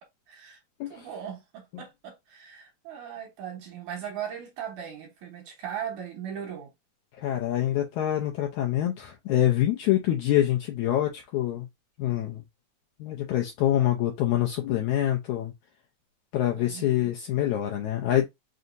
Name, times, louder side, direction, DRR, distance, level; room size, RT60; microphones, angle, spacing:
voice 1, 0.3-0.6 0.9-6.7 16.6-17.1, right 9 dB, 70° right, 2.3 m, -38 dB
voice 2, 7.2-11.7 12.0-12.4 13.0-15.5 16.3-18.3, left 12 dB, 80° left, 1.7 m, -25 dB
5.5 x 2.8 x 2.5 m
omnidirectional pair, 4.0 m